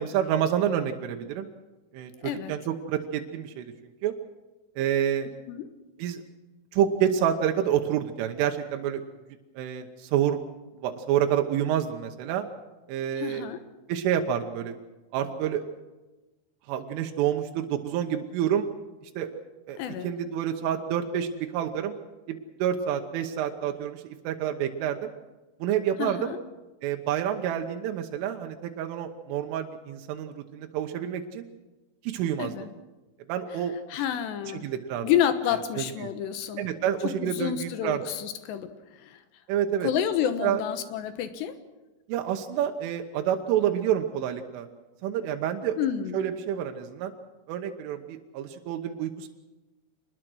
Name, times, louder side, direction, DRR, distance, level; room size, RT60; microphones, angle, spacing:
voice 1, 0.0-1.5 1.9-3.7 4.0-4.2 4.8-5.3 6.0-6.2 6.7-9.0 9.6-10.4 10.8-12.5 12.9-13.5 13.9-14.8 15.1-15.6 16.7-18.7 19.0-19.4 19.7-22.0 22.3-25.1 25.6-26.3 26.8-31.5 32.0-32.5 33.3-33.7 34.6-35.1 35.5-36.1 36.6-38.0 39.5-39.9 40.4-40.6 42.1-44.7 45.0-45.8 46.1-47.1 47.5-49.3, right 9 dB, 85° right, 4 dB, 3.6 m, -28 dB
voice 2, 13.2-13.6 19.8-20.1 26.0-26.4 32.4-32.7 33.9-34.7 35.0-36.6 37.0-38.7 39.0-39.2 39.8-41.5 45.8-46.2, left 10 dB, 70° left, 10 dB, 3.0 m, -29 dB
24.5 x 20.0 x 6.3 m, 1.1 s
omnidirectional pair, 5.6 m